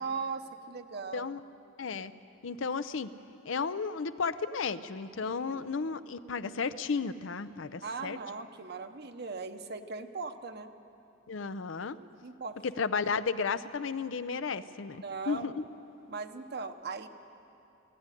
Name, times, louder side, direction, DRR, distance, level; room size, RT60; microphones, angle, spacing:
voice 1, 0.0-1.4 5.2-5.7 7.8-10.7 12.2-12.6 15.0-15.6 16.1-17.1, right 4 dB, 55° right, 8 dB, 1.0 m, -39 dB
voice 2, 1.8-2.1 2.4-3.1 3.4-8.2 11.3-12.0 12.6-15.6, left 5 dB, 80° left, 13 dB, 0.6 m, -33 dB
17.5 x 16.5 x 9.9 m, 2.8 s
head